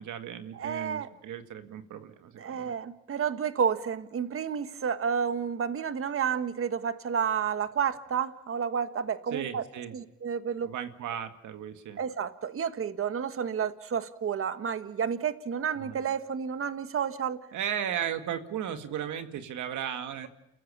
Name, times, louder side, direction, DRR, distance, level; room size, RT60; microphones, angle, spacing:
voice 1, 0.0-2.7 9.3-9.9 10.6-12.0 15.8-16.0 17.5-20.3, right 9 dB, 75° right, 8 dB, 2.1 m, -36 dB
voice 2, 0.5-1.1 2.3-9.6 9.9-10.7 12.0-17.4, right 7 dB, 45° right, 11 dB, 1.5 m, -30 dB
29.0 x 15.0 x 8.7 m, 0.88 s
cardioid pair, 90°, 30 cm